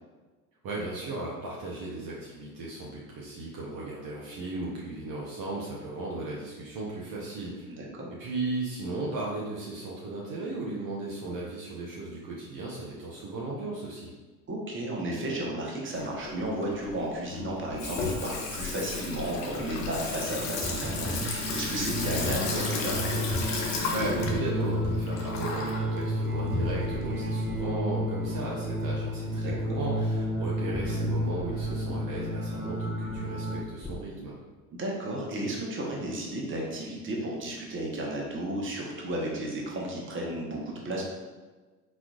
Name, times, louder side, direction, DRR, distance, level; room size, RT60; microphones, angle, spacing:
voice 1, 0.6-7.8 8.2-14.1 23.9-34.4, right 2 dB, 45° right, -4 dB, 1.0 m, -36 dB
voice 2, 7.7-8.1 14.5-23.2 29.4-29.8 34.7-41.0, right 1 dB, 25° right, -2 dB, 1.2 m, -33 dB
Water tap faucet / Sink (filling or washing), 15.9-27.6, left 4 dB, 60° left, 1.0 m, -34 dB
sound 1, 18.6-24.5 24.8-26.0 26.3-27.9 28.2-28.4 28.7-28.9 29.4-29.7 30.2-33.6 33.8-34.0, right 1 dB, ahead, 0.7 m, -38 dB
sound 2, 19.8-33.6, equal, 85° right, 0.8 m, -32 dB
4.4 x 4.1 x 2.5 m, 1.3 s
figure-of-eight pair, 65°, 45 cm